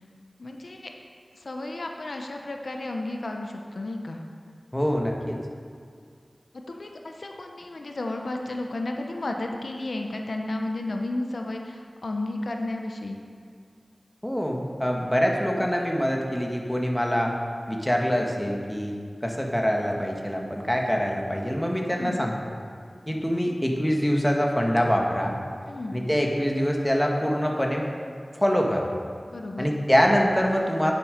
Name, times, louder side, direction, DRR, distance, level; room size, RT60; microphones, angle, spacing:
voice 1, 0.4-0.9 1.3-4.2 6.7-13.2 21.9-22.3 25.7-26.1 29.2-29.8, left 2 dB, 80° left, 3 dB, 0.8 m, -33 dB
voice 2, 4.7-5.4 14.2-17.3 17.7-19.0 19.2-22.3 23.1-25.3 25.9-27.8 28.3-28.9 29.6-30.9, equal, 10° left, 0 dB, 1.5 m, -24 dB
9.8 x 7.4 x 5.2 m, 2.2 s
wide cardioid pair, 40°, 0 cm